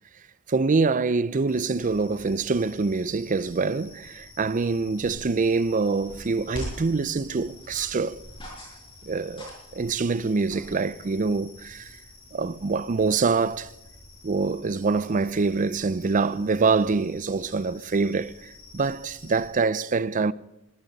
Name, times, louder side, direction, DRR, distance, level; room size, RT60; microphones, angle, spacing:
voice 1, 0.5-8.2 9.0-11.9 12.3-13.7 14.2-20.3, right 4 dB, 35° right, 0.5 m, -25 dB
sound 1, 1.5-19.5, left 2 dB, 70° left, 5.2 m, -50 dB
sound 2, 5.0-11.2, equal, 25° left, 5.6 m, -43 dB
21.5 x 14.5 x 4.1 m
head